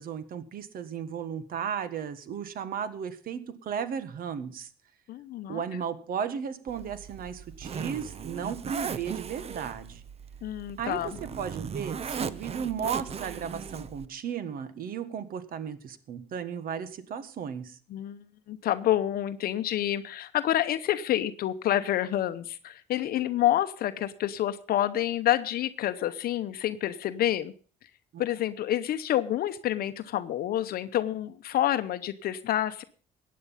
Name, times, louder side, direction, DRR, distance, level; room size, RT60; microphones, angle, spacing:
voice 1, 0.0-4.7 5.5-10.0 10.8-17.8 28.1-28.2, right 7 dB, 60° right, 13 dB, 1.5 m, -35 dB
voice 2, 5.1-5.6 10.4-11.2 17.9-27.5 28.2-32.8, left 12 dB, 65° left, 11 dB, 0.8 m, -28 dB
Zipper (clothing), 6.7-14.1, right 6 dB, 35° right, 0.9 m, -38 dB
15.5 x 9.4 x 5.6 m, 0.42 s
cardioid pair, 110°, 17 cm